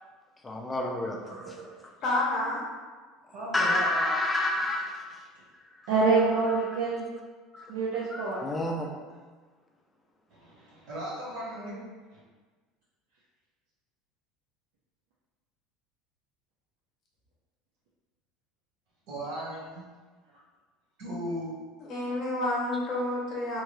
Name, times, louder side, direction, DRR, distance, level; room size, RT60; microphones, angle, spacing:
voice 1, 0.4-1.5 3.5-5.2 7.5-7.7 8.1-8.9, left 2 dB, 10° left, 1 dB, 0.3 m, -29 dB
voice 2, 1.2-1.7 5.9-7.1 7.7-8.4 11.5-11.8, right 4 dB, 80° right, -8 dB, 0.6 m, -27 dB
voice 3, 2.0-2.6 21.8-23.6, left 1 dB, 40° left, -4 dB, 0.7 m, -29 dB
voice 4, 3.3-4.1 10.3-11.8 12.1-12.2 19.1-19.8 21.0-21.6, right 1 dB, 60° right, -6 dB, 1.1 m, -37 dB
2.9 x 2.3 x 3.0 m, 1.4 s
cardioid pair, 160°, 0 cm